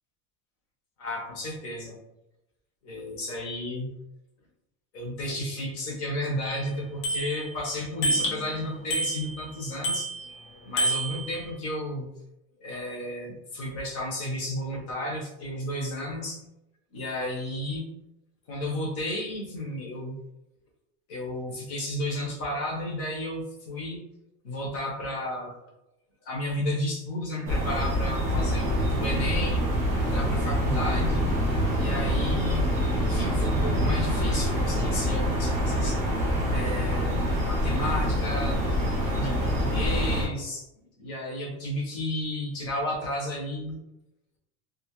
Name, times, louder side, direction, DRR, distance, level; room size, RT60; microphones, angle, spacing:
voice 1, 1.0-2.0 2.8-3.9 4.9-10.3 10.7-12.1 12.6-16.5 16.9-17.9 18.5-20.2 21.1-24.0 24.4-25.5 26.2-29.6 30.0-31.2 31.8-32.7 33.0-36.0 36.5-43.8, left 1 dB, 35° left, -1 dB, 0.7 m, -33 dB
Bicycle bell, 6.5-6.6 7.0-7.6 8.0-8.5 8.9-9.5 9.8-10.4 10.8-11.5, right 1 dB, 60° left, 0.9 m, -28 dB
sound 1, 27.4-40.3, equal, 10° right, 0.3 m, -25 dB
2.5 x 2.4 x 2.9 m, 0.90 s
cardioid pair, 180°, 41 cm